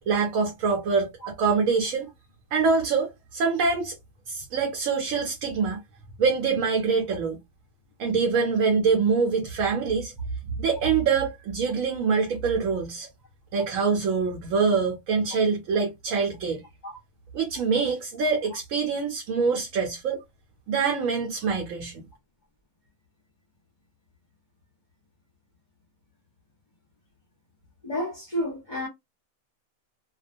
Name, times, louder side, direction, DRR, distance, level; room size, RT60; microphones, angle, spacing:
voice 1, 0.1-2.1 2.5-4.0 4.3-5.8 6.2-7.4 8.0-10.1 10.5-13.1 13.5-16.6 17.3-20.2 20.7-22.0, right 5 dB, 70° right, 1.0 m, -25 dB
voice 2, 27.8-28.9, equal, 40° left, 0.8 m, -30 dB
2.3 x 2.3 x 2.4 m
omnidirectional pair, 1.5 m